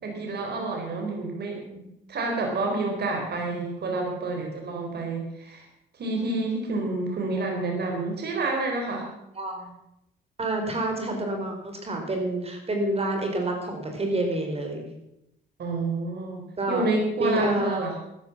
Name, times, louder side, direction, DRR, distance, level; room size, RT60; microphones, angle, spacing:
voice 1, 0.0-5.7 5.9-9.1 15.6-18.0, right 2 dB, 55° right, 1 dB, 4.1 m, -29 dB
voice 2, 9.4-9.7 10.4-14.9 16.6-16.9 17.2-17.8, right 1 dB, 30° right, 3 dB, 4.1 m, -28 dB
13.0 x 11.0 x 7.3 m, 0.84 s
cardioid pair, 90°, 20 cm